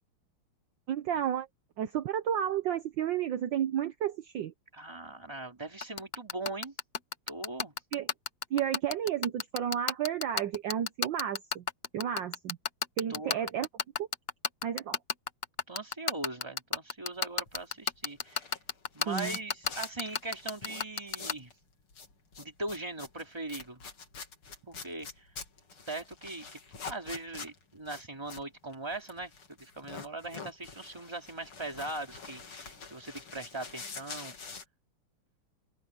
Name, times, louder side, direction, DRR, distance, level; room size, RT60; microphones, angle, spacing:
voice 1, 0.9-1.5 1.8-4.5 7.9-8.1 8.5-11.6 11.9-12.6 13.0-13.7 14.0-14.1 14.6-15.0 19.1-19.4, right 9 dB, 65° right, 1.5 m, -32 dB
voice 2, 4.7-6.7 7.3-7.7 13.1-13.5 15.7-18.5 18.9-21.5 22.4-23.9 24.7-25.3 25.9-26.6 26.9-29.3 29.6-34.5, right 2 dB, 10° right, 2.7 m, -40 dB
sound 1, 5.8-21.3, left 6 dB, 40° left, 0.9 m, -30 dB
sound 2, 17.3-21.5 21.8-34.6, left 5 dB, 80° left, 3.8 m, -46 dB
omnidirectional pair, 2.4 m